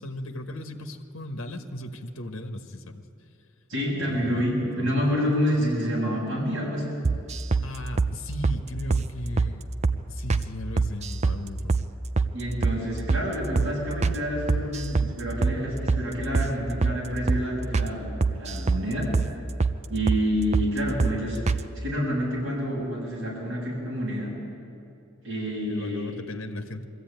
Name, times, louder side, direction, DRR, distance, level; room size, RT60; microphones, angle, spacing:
voice 1, 0.0-3.0 4.1-5.0 7.6-9.7 10.1-11.8 12.8-12.9 25.7-26.8, left 1 dB, 75° left, 5 dB, 1.3 m, -36 dB
voice 2, 3.7-6.9 12.3-19.1 19.9-21.4 21.8-24.3 25.2-26.2, equal, 70° right, -4 dB, 6.9 m, -28 dB
sound 1, 7.0-7.7 8.0-8.1 8.4-8.6 8.9-9.1 9.4-9.5 9.8-10.0 10.3-10.5 10.8-11.4 11.7-11.9 12.2-12.3 12.6-12.8 13.1-13.3 13.6-13.7 14.0-14.2 14.5-15.1 15.4-15.6 15.9-16.0 16.3-16.5 16.8-17.0 17.3-17.4 17.7-17.9 18.2-18.8 19.1-19.3 19.6-19.8 20.1-20.2 20.5-20.7 21.0-21.2 21.5-21.6, right 4 dB, 30° right, 0.5 m, -23 dB
22.0 x 14.5 x 9.3 m, 2.6 s
head